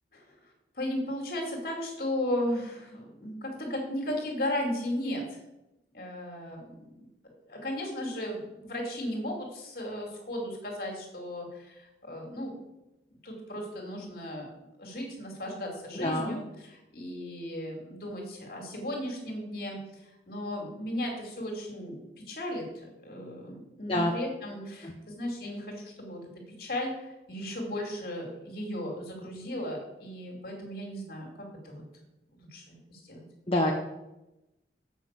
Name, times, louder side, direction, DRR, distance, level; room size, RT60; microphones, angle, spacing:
voice 1, 0.7-5.4 5.9-7.1 7.5-12.5 13.2-14.5 14.8-26.2 26.5-31.8 32.3-33.2, left 1 dB, 55° left, 0 dB, 2.6 m, -36 dB
voice 2, 15.9-16.4 23.9-24.1 24.8-24.9 33.5-33.7, left 1 dB, 30° left, -1 dB, 0.9 m, -27 dB
7.3 x 5.9 x 7.4 m, 0.95 s
head